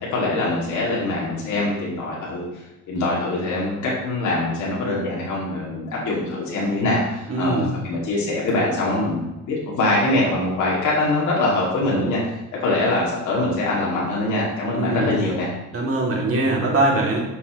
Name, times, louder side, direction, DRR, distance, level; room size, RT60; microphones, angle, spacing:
voice 1, 0.0-15.5, left 2 dB, 75° left, -5 dB, 2.6 m, -23 dB
voice 2, 7.3-7.7 14.7-15.1 15.7-17.2, right 2 dB, 45° right, -2 dB, 2.7 m, -22 dB
9.4 x 7.0 x 3.1 m, 1.0 s
cardioid pair, 90°, 30 cm